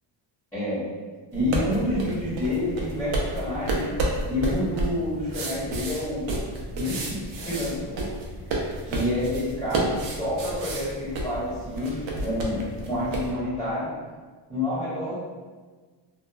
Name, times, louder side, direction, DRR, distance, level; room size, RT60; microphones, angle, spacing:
voice 1, 0.5-0.9 1.3-3.9 4.3-6.3 6.7-8.1 8.9-13.9 14.5-15.2, left 1 dB, 5° left, -13 dB, 0.9 m, -28 dB
sound 1, 1.3-13.3, right 1 dB, 75° right, 0.6 m, -31 dB
2.8 x 2.2 x 2.3 m, 1.4 s
cardioid pair, 170°, 47 cm